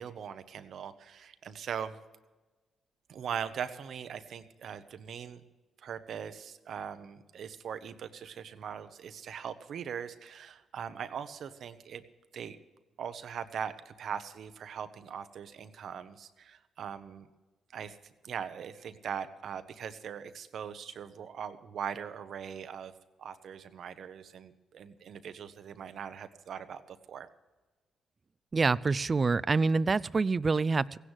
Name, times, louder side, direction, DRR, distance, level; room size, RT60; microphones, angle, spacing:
voice 1, 0.0-2.0 3.1-5.4 5.8-12.0 12.3-12.6 13.0-17.3 17.7-18.0 18.2-22.9 23.2-27.3, right 7 dB, 70° right, 11 dB, 0.9 m, -40 dB
voice 2, 28.5-31.0, right 4 dB, 35° right, 20 dB, 0.4 m, -26 dB
16.0 x 10.0 x 6.4 m, 1.2 s
supercardioid pair, 65°, 0 cm